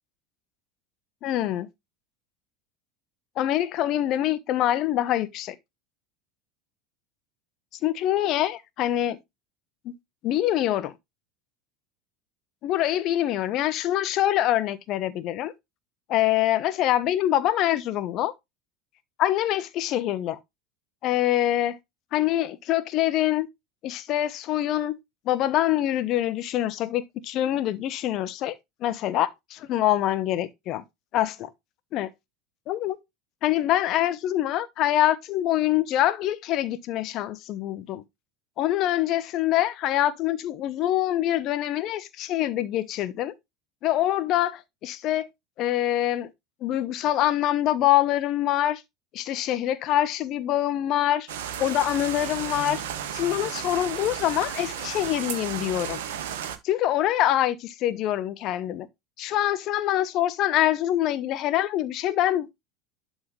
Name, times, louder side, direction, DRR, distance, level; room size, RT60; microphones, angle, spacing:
voice 1, 1.2-1.7 3.4-5.5 7.8-9.2 9.8-9.9 10.2-10.9 12.6-15.5 16.1-18.3 19.2-20.4 21.0-21.8 22.1-23.5 23.8-25.0 25.3-28.6 28.8-30.8 31.1-31.5 31.9-32.1 32.7-33.0 33.4-38.0 38.6-43.3 43.8-45.3 45.6-46.3 46.6-48.8 49.1-51.3 51.6-52.8 53.1-56.0 56.6-58.9 59.2-62.6, left 13 dB, 50° left, 1.0 m, -25 dB
sound 1, 51.3-56.6, right 9 dB, 70° right, 1.3 m, -33 dB
11.5 x 3.9 x 3.3 m
hypercardioid pair, 80°, 0 cm